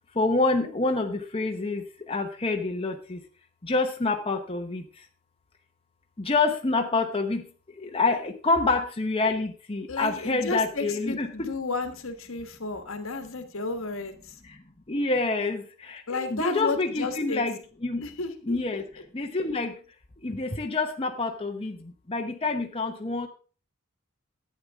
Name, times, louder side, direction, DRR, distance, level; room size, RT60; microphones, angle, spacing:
voice 1, 0.2-3.2 3.6-4.8 6.2-7.4 7.8-11.5 14.9-18.0 18.4-18.8 19.1-19.7 20.2-23.3, left 3 dB, 25° left, 3 dB, 0.9 m, -27 dB
voice 2, 9.9-14.4 16.1-17.4 18.0-18.8, left 3 dB, 75° left, 7 dB, 1.5 m, -32 dB
11.5 x 8.8 x 3.6 m, 0.38 s
head